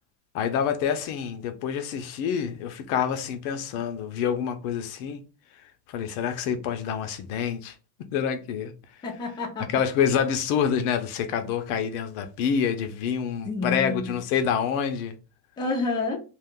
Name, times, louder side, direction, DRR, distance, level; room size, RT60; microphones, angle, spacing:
voice 1, 0.3-5.2 5.9-7.7 8.1-8.7 9.7-15.1, left 8 dB, 65° left, 0.6 m, -27 dB
voice 2, 9.0-9.8 13.4-14.1 15.6-16.2, left 3 dB, 10° left, 0.5 m, -29 dB
2.4 x 2.3 x 3.5 m
supercardioid pair, 125°, 47 cm